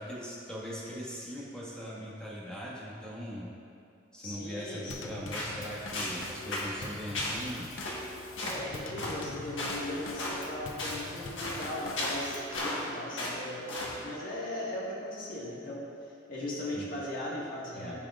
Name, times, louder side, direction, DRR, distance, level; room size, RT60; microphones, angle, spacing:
voice 1, 0.0-3.5 4.1-7.7 16.7-16.8 17.7-18.0, equal, 5° left, -7 dB, 1.7 m, -40 dB
voice 2, 4.2-5.3 8.4-15.9 16.3-18.0, left 1 dB, 50° left, -6 dB, 1.7 m, -38 dB
Drum kit / Snare drum / Bass drum, 4.9-12.6, left 3 dB, 85° left, 0.6 m, -44 dB
sound 1, 5.3-5.5 5.9-6.2 6.5-6.7 7.1-7.4 7.8-8.0 8.4-8.6 9.0-9.2 9.6-9.8 10.2-10.4 10.8-11.0 11.4-11.6 12.0-12.9 13.2-13.4 13.7-13.9, left 1 dB, 70° left, 1.5 m, -34 dB
14.5 x 5.0 x 2.5 m, 2.5 s
head